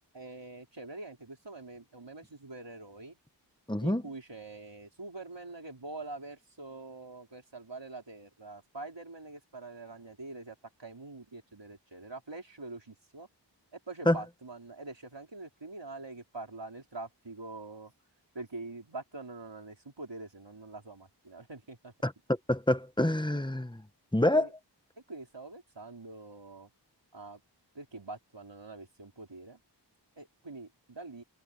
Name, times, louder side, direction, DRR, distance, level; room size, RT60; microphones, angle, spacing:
voice 1, 0.1-3.2 3.8-13.3 13.9-17.9 18.3-21.9 23.3-23.4 24.3-24.5 25.1-26.7 27.1-27.4 27.7-29.6 30.2-31.2, right 3 dB, 80° right, 4.2 m, -45 dB
voice 2, 3.7-4.0 14.1-14.2 22.0-22.1 22.5-23.8 24.1-24.5, left 1 dB, 10° left, 1.3 m, -26 dB
wide cardioid pair, 40°, 43 cm